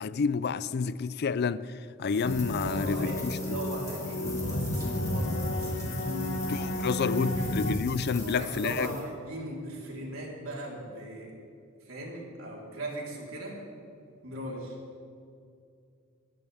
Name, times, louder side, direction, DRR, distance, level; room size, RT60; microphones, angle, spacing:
voice 1, 0.0-3.6 6.5-8.9, left 5 dB, 50° left, 0.4 m, -30 dB
sound 1, 2.1-9.0, left 3 dB, 15° left, 3.0 m, -43 dB
sound 2, 2.2-7.7, left 1 dB, 70° left, 1.5 m, -32 dB
voice 2, 2.6-7.5 8.2-11.3 11.8-13.6 14.2-14.8, right 1 dB, 90° right, 3.9 m, -39 dB
21.5 x 15.0 x 3.5 m
head